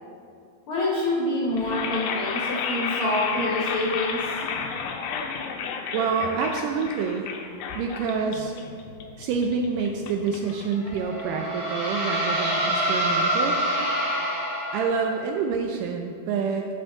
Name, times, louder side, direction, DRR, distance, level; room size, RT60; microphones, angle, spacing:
voice 1, 0.7-4.2, left 1 dB, 65° left, -6 dB, 1.3 m, -26 dB
sound 1, 1.5-11.6, left 6 dB, 85° left, 1.8 m, -32 dB
voice 2, 5.9-7.3 7.8-8.5 9.2-13.6 14.7-16.7, right 5 dB, 80° right, 3 dB, 1.9 m, -27 dB
sound 2, 10.9-15.2, right 1 dB, 30° right, 2.1 m, -26 dB
10.5 x 6.0 x 3.9 m, 2.3 s
omnidirectional pair, 4.1 m